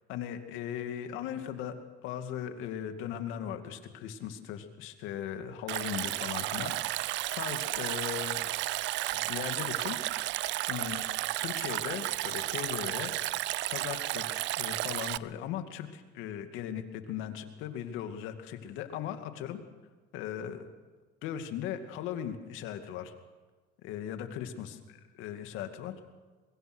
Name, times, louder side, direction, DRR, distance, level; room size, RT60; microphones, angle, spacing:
voice 1, 0.1-1.7 2.0-7.0 7.3-8.4 9.1-10.3 10.7-11.1 11.4-13.1 13.7-19.6 20.1-20.7 21.2-23.1 23.8-25.9, left 10 dB, 75° left, 7 dB, 2.4 m, -38 dB
Stream, 5.7-15.2, right 17 dB, 65° right, 0.6 m, -33 dB
24.5 x 22.0 x 6.3 m, 1.4 s
cardioid pair, 110°, 20 cm